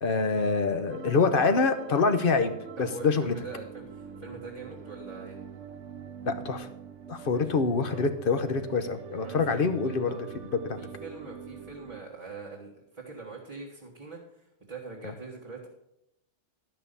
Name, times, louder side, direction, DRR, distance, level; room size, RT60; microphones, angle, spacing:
voice 1, 0.0-2.5 2.8-3.3 6.2-6.7 7.1-10.2 10.6-10.8, left 4 dB, 50° left, 9 dB, 1.0 m, -25 dB
sound 1, 0.9-12.0, right 7 dB, 70° right, 1.2 m, -44 dB
voice 2, 2.8-5.4 7.3-7.5 7.8-8.1 9.2-9.6 9.8-10.2 10.8-15.7, right 4 dB, 25° right, -6 dB, 1.8 m, -43 dB
12.5 x 5.7 x 6.9 m, 0.82 s
omnidirectional pair, 1.3 m